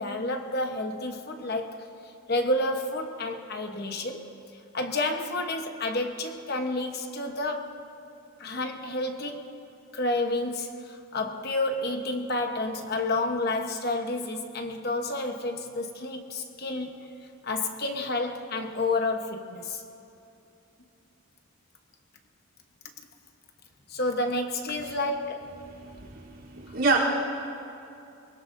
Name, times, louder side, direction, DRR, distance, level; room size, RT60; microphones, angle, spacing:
voice 1, 0.0-1.8 2.3-4.2 4.7-7.8 8.4-9.6 9.9-17.0 17.4-19.8 23.9-25.5, left 2 dB, 45° left, 4 dB, 1.1 m, -30 dB
voice 2, 25.6-27.0, right 4 dB, 65° right, -6 dB, 3.4 m, -28 dB
23.5 x 21.0 x 2.7 m, 2.7 s
head